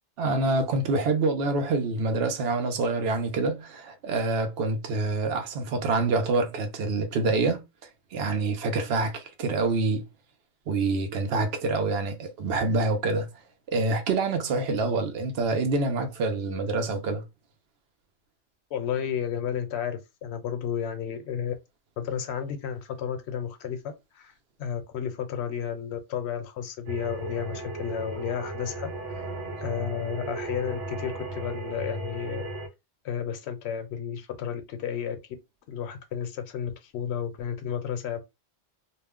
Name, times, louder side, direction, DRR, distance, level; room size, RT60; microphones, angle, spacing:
voice 1, 0.2-7.6 8.1-10.0 10.7-13.3 13.7-17.2, right 3 dB, 60° right, 0.8 m, -26 dB
voice 2, 18.7-21.6 22.0-24.3 24.6-29.3 29.6-32.5 33.0-35.2 35.7-38.2, left 8 dB, 70° left, 0.8 m, -32 dB
sound 1, 26.9-32.7, right 2 dB, 90° right, 1.0 m, -35 dB
2.4 x 2.1 x 3.5 m
omnidirectional pair, 1.2 m